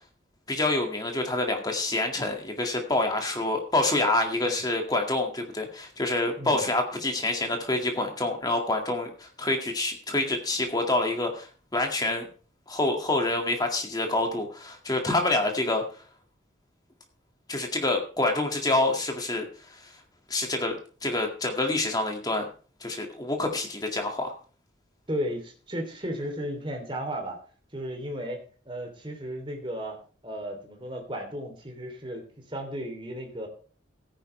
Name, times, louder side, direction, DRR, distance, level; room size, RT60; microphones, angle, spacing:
voice 1, 0.5-12.3 12.7-15.8 17.5-19.4 20.3-20.7 21.0-22.4 22.8-24.3, left 2 dB, 20° left, 3 dB, 2.0 m, -27 dB
voice 2, 25.1-27.4 27.7-28.4 28.6-30.0 30.2-33.5, equal, 25° right, 3 dB, 3.1 m, -34 dB
16.0 x 9.8 x 3.3 m, 0.40 s
head